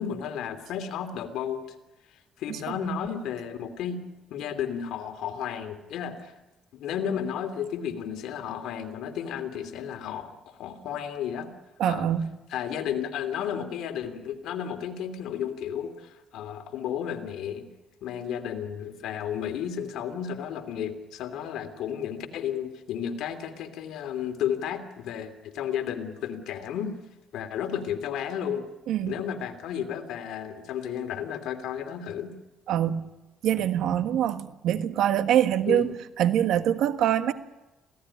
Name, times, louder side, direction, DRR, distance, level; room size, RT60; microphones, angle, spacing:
voice 1, 0.0-1.6 2.4-4.0 4.3-6.3 6.7-11.5 11.9-12.1 12.5-17.7 18.0-27.0 27.3-28.7 29.1-32.3 35.7-35.9, left 8 dB, 80° left, 6 dB, 2.8 m, -33 dB
voice 2, 11.8-12.3 28.9-29.1 32.7-33.1 33.4-37.3, right 10 dB, 80° right, 10 dB, 1.5 m, -24 dB
26.5 x 17.5 x 10.0 m, 1.0 s
cardioid pair, 105°, 0 cm